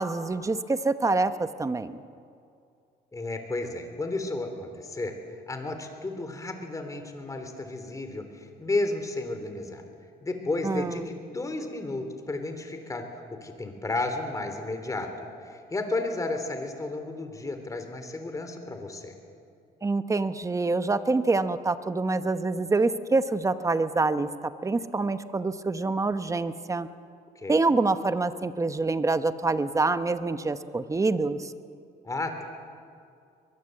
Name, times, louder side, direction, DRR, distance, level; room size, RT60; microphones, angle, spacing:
voice 1, 0.0-2.0 10.6-11.1 19.8-26.9 27.5-31.5, right 3 dB, 20° right, 11 dB, 1.0 m, -26 dB
voice 2, 3.1-5.1 5.5-9.8 10.2-13.0 13.4-19.1 27.4-27.6 32.0-32.4, left 2 dB, 20° left, 6 dB, 3.6 m, -32 dB
22.5 x 22.0 x 7.9 m, 2.4 s
cardioid pair, 110°, 17 cm